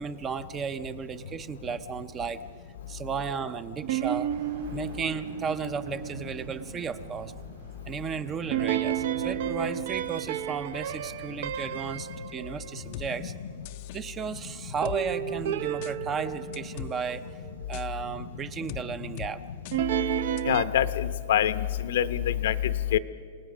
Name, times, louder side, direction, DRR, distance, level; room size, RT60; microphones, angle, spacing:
voice 1, 0.0-2.4 2.9-4.3 4.7-7.3 7.9-13.3 13.9-17.3 17.7-19.4, right 6 dB, 20° right, 13 dB, 0.6 m, -34 dB
sound 1, 3.8-7.0 8.5-13.0 14.8-17.5 19.7-20.6, right 10 dB, 60° right, 0.7 m, -32 dB
sound 2, 4.3-10.1, right 4 dB, 80° right, 6.9 m, -47 dB
sound 3, 12.9-13.1 13.7-14.0 14.9-15.0 15.8-15.9 16.5-16.9 17.7-17.9 18.7-18.8 19.2-19.3 19.7-19.8 20.4-20.5, left 13 dB, 45° left, 0.5 m, -39 dB
voice 2, 20.5-22.5 22.9-23.0, left 10 dB, 75° left, 12 dB, 0.9 m, -25 dB
28.0 x 18.5 x 6.2 m, 2.1 s
supercardioid pair, 160°, 0 cm